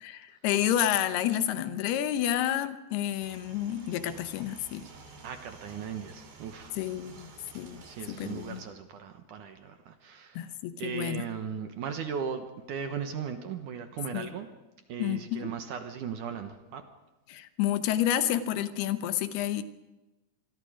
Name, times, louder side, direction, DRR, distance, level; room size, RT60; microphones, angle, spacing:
voice 1, 0.0-4.8 6.7-7.8 8.1-8.6 10.4-11.2 14.1-14.3 15.0-15.5 17.3-19.6, left 11 dB, 80° left, 11 dB, 3.0 m, -30 dB
sound 1, 3.2-8.6, right 4 dB, 85° right, 5.5 m, -51 dB
voice 2, 5.2-6.8 7.8-10.5 10.8-14.5 14.9-16.9, right 7 dB, 65° right, 7 dB, 2.4 m, -37 dB
27.0 x 22.0 x 5.1 m, 1.1 s
omnidirectional pair, 4.6 m